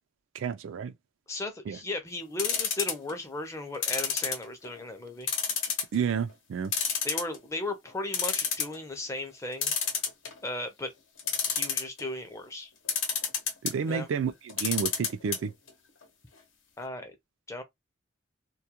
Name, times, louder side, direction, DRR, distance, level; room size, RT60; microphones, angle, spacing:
voice 1, 0.3-0.9 1.7-1.8 5.9-6.7 13.6-15.5, right 6 dB, 75° right, 0.3 m, -30 dB
voice 2, 1.3-5.3 7.0-9.7 10.4-10.9 11.5-12.7 13.9-14.1 16.8-17.1 17.5-17.6, left 2 dB, 15° left, 0.5 m, -36 dB
sound 1, 2.4-3.1 3.8-4.8 5.3-5.9 6.3-6.4 6.7-7.5 7.9-8.0 8.1-8.8 9.6-10.5 11.2-12.0 12.9-13.7 14.5-15.4 15.7-15.8 16.0-16.1, left 7 dB, 75° left, 0.8 m, -28 dB
2.3 x 2.1 x 2.8 m
head